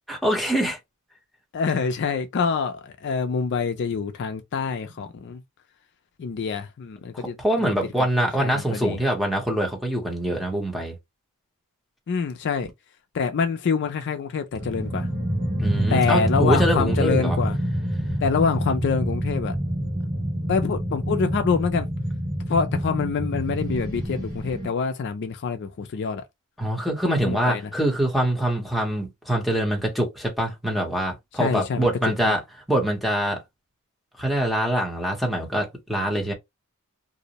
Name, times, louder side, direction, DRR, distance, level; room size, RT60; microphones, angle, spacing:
voice 1, 0.1-0.8 7.1-11.0 15.6-17.4 26.6-32.4 32.7-33.4 34.2-36.3, right 1 dB, ahead, 0.7 m, -24 dB
voice 2, 1.5-5.4 6.2-7.7 8.4-9.0 12.1-12.7 13.1-15.1 15.9-17.6 18.2-19.6 20.5-21.9 22.5-26.2 27.2-27.6 31.4-31.9 32.2-32.3, left 5 dB, 55° left, 0.4 m, -26 dB
sound 1, 14.5-24.7, equal, 35° right, 1.3 m, -27 dB
2.5 x 2.0 x 2.8 m
head